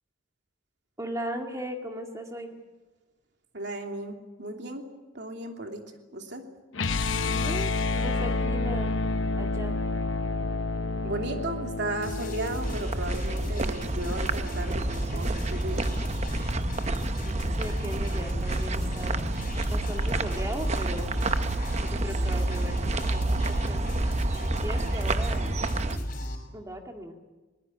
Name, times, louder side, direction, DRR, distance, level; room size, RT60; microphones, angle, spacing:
voice 1, 1.0-2.6 7.3-8.9 9.4-9.8 17.6-19.2 19.7-21.1 21.8-23.8 24.2-25.5 26.5-27.1, equal, 15° right, 3 dB, 2.0 m, -38 dB
voice 2, 3.5-4.9 5.1-5.8 6.1-6.5 11.0-15.9 21.8-21.9, right 2 dB, 60° right, 3 dB, 3.0 m, -35 dB
sound 1, 6.7-12.8, left 3 dB, 75° left, 0.9 m, -29 dB
sound 2, 12.0-26.4, equal, 45° left, 5.5 m, -34 dB
sound 3, 12.6-26.0, right 2 dB, 35° right, 0.8 m, -29 dB
20.5 x 20.0 x 9.9 m, 1.2 s
head